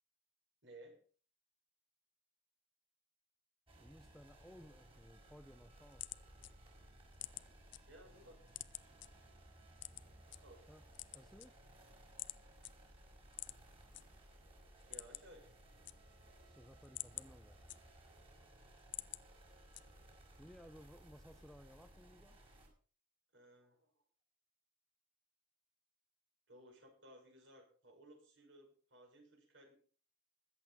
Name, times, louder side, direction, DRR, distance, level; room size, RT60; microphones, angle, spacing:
voice 1, 0.6-1.0 7.9-8.4 10.4-10.7 14.9-15.5 23.3-23.9 26.5-29.7, right 1 dB, 65° right, 2 dB, 6.4 m, -59 dB
sound 1, 3.7-22.7, right 1 dB, 30° right, 5.0 m, -61 dB
voice 2, 3.8-6.1 10.7-10.8 11.1-11.6 16.4-17.6 20.4-22.4, equal, ahead, 9 dB, 0.6 m, -59 dB
sound 2, 5.8-7.8 8.2-9.1 9.8-10.4 10.8-11.8 12.2-12.4 12.6-12.7 13.3-14.0 14.4-14.5 14.8-15.4 15.7-16.3 16.7-18.2 18.6-19.2 19.7-20.2, left 17 dB, 60° left, 0.6 m, -48 dB
21.5 x 8.6 x 4.3 m, 0.41 s
head